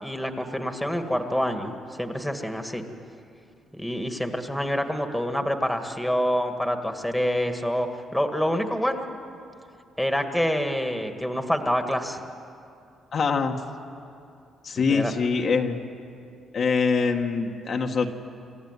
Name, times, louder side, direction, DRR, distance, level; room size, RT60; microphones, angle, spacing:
voice 1, 0.0-2.8 3.7-9.1 10.0-12.2 14.8-15.1, equal, 5° left, 6 dB, 1.8 m, -27 dB
voice 2, 13.1-13.6 14.6-15.8 16.5-18.1, left 5 dB, 55° left, 2 dB, 1.6 m, -24 dB
26.0 x 14.5 x 9.7 m, 2.6 s
cardioid pair, 90°, 0 cm